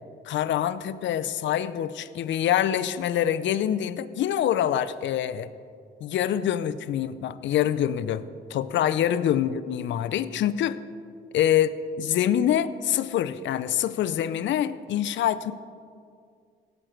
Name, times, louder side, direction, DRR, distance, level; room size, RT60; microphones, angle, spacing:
voice 1, 0.2-5.5 6.0-8.2 8.5-10.8 11.3-15.5, left 10 dB, 70° left, 15 dB, 0.5 m, -25 dB
17.0 x 6.4 x 4.5 m, 2.2 s
cardioid pair, 90°, 20 cm